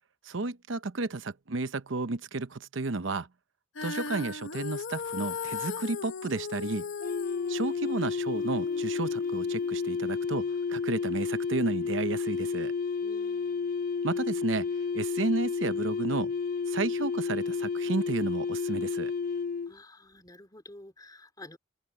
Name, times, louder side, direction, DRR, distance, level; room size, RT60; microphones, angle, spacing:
voice 1, 0.3-3.3 3.8-6.9 7.5-12.7 14.0-14.7 14.9-16.3 16.7-19.1, right 3 dB, 75° right, 0.8 m, -32 dB
Female singing, 3.7-10.0, left 5 dB, 70° left, 1.1 m, -38 dB
sound 1, 7.0-19.7, left 5 dB, 45° left, 0.9 m, -31 dB
voice 2, 13.0-13.9 19.7-21.6, left 1 dB, 20° left, 4.1 m, -50 dB
head